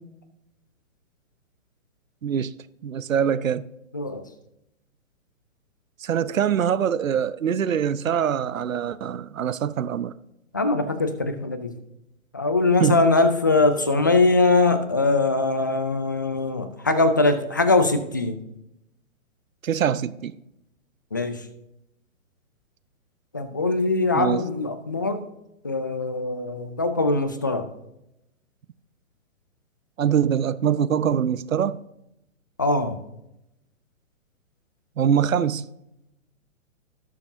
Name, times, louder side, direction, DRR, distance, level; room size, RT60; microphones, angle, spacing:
voice 1, 2.2-2.5 2.8-3.6 6.0-10.1 12.8-13.1 19.6-20.4 24.1-24.4 30.0-31.8 35.0-35.7, right 8 dB, 80° right, 0.7 m, -23 dB
voice 2, 10.5-11.7 12.3-18.4 21.1-21.4 23.3-25.2 25.6-27.7 32.6-33.0, left 3 dB, 15° left, 0.3 m, -22 dB
18.0 x 7.0 x 2.7 m
hypercardioid pair, 130°, 40 cm